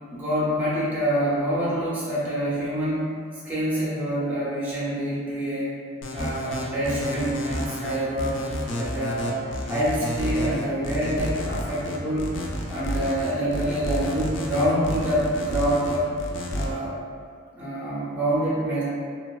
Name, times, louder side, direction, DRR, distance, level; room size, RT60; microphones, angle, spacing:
voice 1, 0.1-3.1 3.4-5.8 6.1-8.4 8.7-12.3 12.7-16.1 16.5-16.9 17.5-18.8, equal, 10° right, -8 dB, 0.4 m, -26 dB
sound 1, 6.0-16.7, left 1 dB, 65° left, 0.4 m, -31 dB
2.9 x 2.2 x 2.2 m, 2.1 s
head